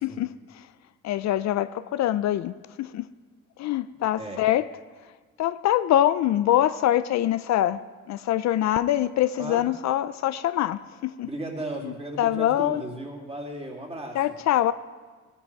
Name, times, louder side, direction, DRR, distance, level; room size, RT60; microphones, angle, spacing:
voice 1, 0.0-0.7 1.0-3.1 3.6-4.7 5.4-7.8 8.1-11.3 11.8-12.8 14.1-14.7, left 12 dB, 65° left, 14 dB, 0.4 m, -24 dB
voice 2, 11.2-14.4, right 1 dB, 20° right, -1 dB, 2.6 m, -35 dB
16.5 x 9.8 x 4.6 m, 1.4 s
cardioid pair, 90°, 30 cm